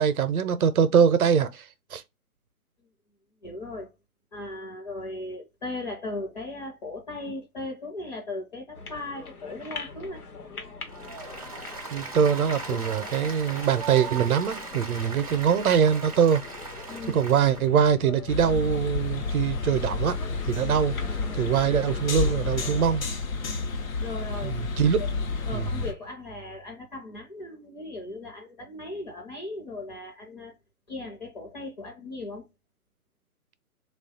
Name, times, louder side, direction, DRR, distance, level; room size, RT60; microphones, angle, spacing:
voice 1, 0.0-2.0 11.9-16.4 17.1-20.2 20.4-20.9 21.3-23.0 24.4-25.0 25.5-25.8, right 7 dB, 70° right, 0.6 m, -23 dB
voice 2, 3.4-3.9 4.3-10.2 16.9-17.2 24.0-24.6 25.0-25.1 25.5-30.5 30.9-32.5, left 2 dB, 30° left, 0.7 m, -37 dB
sound 1, 8.7-22.8, left 4 dB, 80° left, 1.1 m, -42 dB
Applause, 10.9-17.7, right 4 dB, 25° right, 0.4 m, -38 dB
sound 2, 18.3-25.9, left 4 dB, 65° left, 0.8 m, -30 dB
3.1 x 2.3 x 3.7 m
hypercardioid pair, 145°, 44 cm